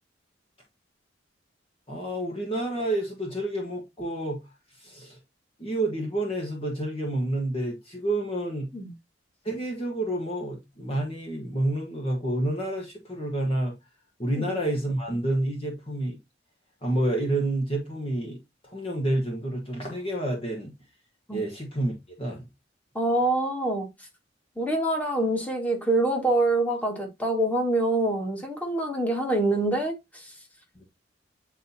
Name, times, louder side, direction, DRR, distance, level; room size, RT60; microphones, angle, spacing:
voice 1, 1.9-4.4 4.8-5.2 5.6-8.7 9.4-13.7 14.2-16.2 16.8-18.4 18.7-20.7 21.3-21.9 22.2-22.4, right 1 dB, 30° left, 1.4 m, -29 dB
voice 2, 23.0-23.9 24.6-29.9, right 2 dB, 10° left, 1.9 m, -25 dB
9.0 x 4.1 x 2.8 m
head